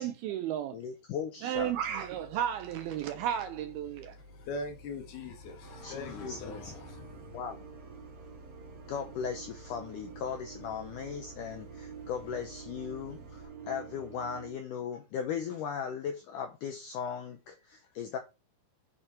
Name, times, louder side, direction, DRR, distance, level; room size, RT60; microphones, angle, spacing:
voice 1, 0.0-0.8 1.4-4.2, right 10 dB, 85° right, 2.2 m, -33 dB
voice 2, 0.7-1.7 5.8-6.7 7.3-7.6 8.9-18.2, left 7 dB, 90° left, 1.8 m, -38 dB
sound 1, 1.5-13.5, left 2 dB, 20° right, 1.6 m, -53 dB
voice 3, 4.2-7.4, left 3 dB, 70° left, 3.5 m, -41 dB
sound 2, 5.6-14.5, right 7 dB, 45° right, 2.8 m, -48 dB
8.8 x 6.3 x 4.4 m
omnidirectional pair, 5.0 m